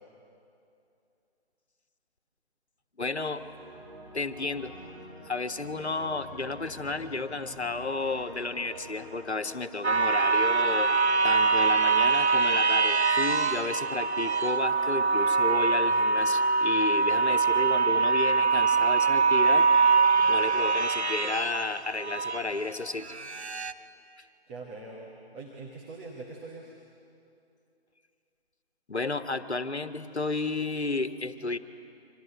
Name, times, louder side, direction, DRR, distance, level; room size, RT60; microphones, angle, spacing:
voice 1, 3.0-3.4 4.1-11.0 11.2-19.7 20.2-23.1 28.9-31.6, left 3 dB, 80° left, 10 dB, 1.6 m, -32 dB
sound 1, 3.1-13.2, right 2 dB, 30° right, 6.4 m, -48 dB
sound 2, 9.8-22.5 23.1-23.7, right 4 dB, 80° right, 1.3 m, -24 dB
voice 2, 24.5-26.8, right 3 dB, 10° right, -4 dB, 1.2 m, -43 dB
28.5 x 25.0 x 7.9 m, 2.6 s
figure-of-eight pair, 155°, 33 cm